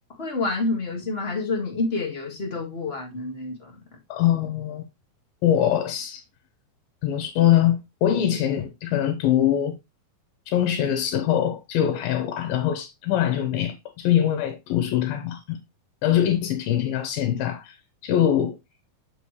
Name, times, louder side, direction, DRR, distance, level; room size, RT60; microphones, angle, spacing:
voice 1, 0.2-3.8, left 3 dB, 25° left, 1.3 m, -28 dB
voice 2, 4.1-4.8 5.4-6.2 7.0-9.8 10.5-15.6 16.0-17.8 18.0-18.6, left 11 dB, 80° left, 2.7 m, -23 dB
7.0 x 6.0 x 3.1 m
omnidirectional pair, 4.2 m